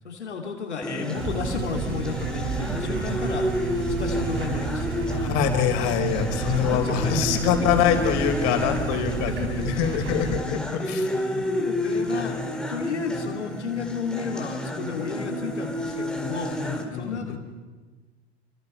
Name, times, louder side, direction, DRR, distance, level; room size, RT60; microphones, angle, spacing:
voice 1, 0.0-5.1 6.3-7.4 7.9-8.0 9.3-9.7 9.9-10.2 10.5-10.6 11.2-16.5 16.9-17.4, left 6 dB, 90° left, 3 dB, 2.7 m, -33 dB
sound 1, 0.8-16.8, left 1 dB, ahead, 4.3 m, -30 dB
sound 2, 1.2-10.4, right 6 dB, 40° right, 4.4 m, -31 dB
voice 2, 5.1-11.0 11.3-11.4 16.6-17.4, left 8 dB, 60° left, 5 dB, 4.6 m, -25 dB
28.5 x 24.5 x 5.6 m, 1.3 s
hypercardioid pair, 80°, 33 cm